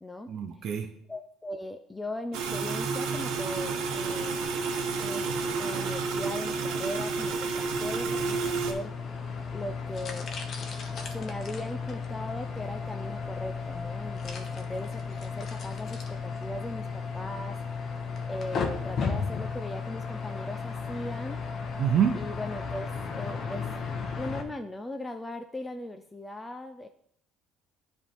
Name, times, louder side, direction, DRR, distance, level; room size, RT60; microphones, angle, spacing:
voice 1, 0.3-0.9 21.8-22.2, right 8 dB, 50° right, 3 dB, 0.7 m, -26 dB
voice 2, 1.1-4.4 5.0-5.3 5.6-8.9 9.5-10.3 11.1-17.6 18.3-21.4 22.1-23.6 24.1-26.9, left 1 dB, 10° left, 6 dB, 0.4 m, -39 dB
sound 1, 2.3-8.7, right 4 dB, 80° right, 1.0 m, -30 dB
sound 2, 7.5-24.4, left 5 dB, 45° left, 1.0 m, -35 dB
10.0 x 3.5 x 4.5 m, 0.68 s
cardioid pair, 110°, 0 cm